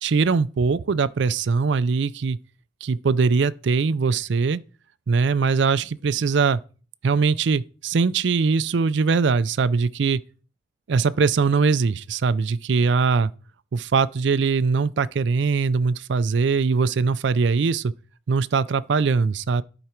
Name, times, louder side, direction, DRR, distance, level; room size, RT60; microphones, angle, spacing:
voice 1, 0.0-2.4 2.8-4.6 5.1-6.6 7.0-10.2 10.9-13.3 13.7-17.9 18.3-19.6, right 5 dB, 65° right, 0.4 m, -21 dB
11.0 x 4.9 x 4.4 m
head